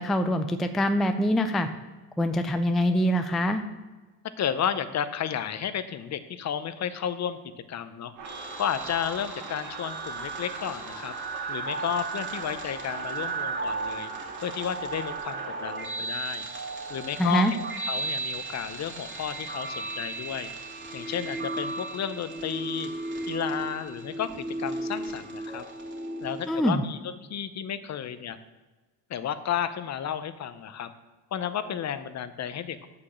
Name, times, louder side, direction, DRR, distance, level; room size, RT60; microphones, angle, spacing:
voice 1, 0.0-1.7 2.2-3.6 17.2-17.5 26.5-26.8, equal, ahead, 8 dB, 0.4 m, -24 dB
voice 2, 4.4-7.4 7.7-8.1 8.6-11.1 11.5-14.1 14.4-16.5 16.9-17.6 17.9-20.5 20.9-22.9 23.3-25.6 26.2-27.0 27.3-28.4 29.1-30.9 31.3-32.9, left 9 dB, 40° left, 12 dB, 0.7 m, -32 dB
sound 1, 8.2-26.5, right 3 dB, 25° right, 2.4 m, -35 dB
sound 2, 8.2-15.8, right 4 dB, 80° right, 3.1 m, -41 dB
8.3 x 5.0 x 7.1 m, 1.3 s
cardioid pair, 110°, 44 cm